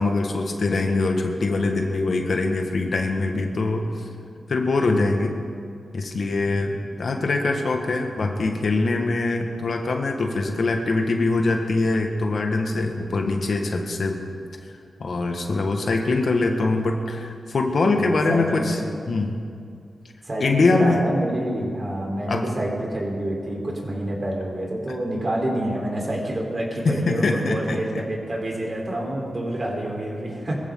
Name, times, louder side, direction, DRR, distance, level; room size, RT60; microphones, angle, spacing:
voice 1, 0.0-3.9 4.5-5.4 5.9-14.2 15.0-19.3 20.4-21.0 22.3-22.4 26.8-28.0, left 3 dB, 60° left, 3 dB, 1.7 m, -23 dB
voice 2, 17.9-18.7 20.2-30.6, right 1 dB, 35° right, -2 dB, 4.1 m, -27 dB
23.0 x 14.5 x 3.9 m, 2.3 s
wide cardioid pair, 90°, 0 cm